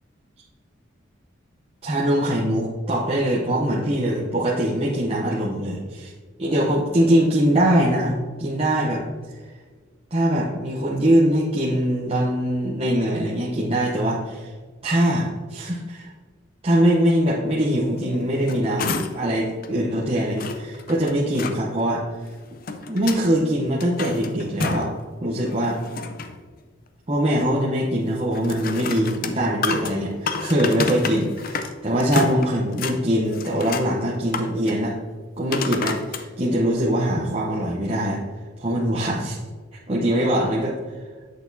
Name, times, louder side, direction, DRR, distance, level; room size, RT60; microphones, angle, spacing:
voice 1, 1.8-6.1 6.4-9.0 9.3-9.4 10.1-14.5 14.8-16.1 16.6-22.0 22.9-24.9 25.2-25.8 27.1-35.0 35.4-38.2 38.6-39.4 39.9-40.8, right 1 dB, 30° right, -5 dB, 0.8 m, -22 dB
sound 1, 18.2-19.3 19.6-19.7 20.4-21.6 22.3-23.3 23.7-25.0 25.4-26.4 28.3-31.7 32.0-33.0 33.3-33.9 34.3-34.7 35.5-36.2 36.9-37.0, left 4 dB, 45° left, 0.5 m, -29 dB
8.1 x 6.6 x 2.7 m, 1.5 s
head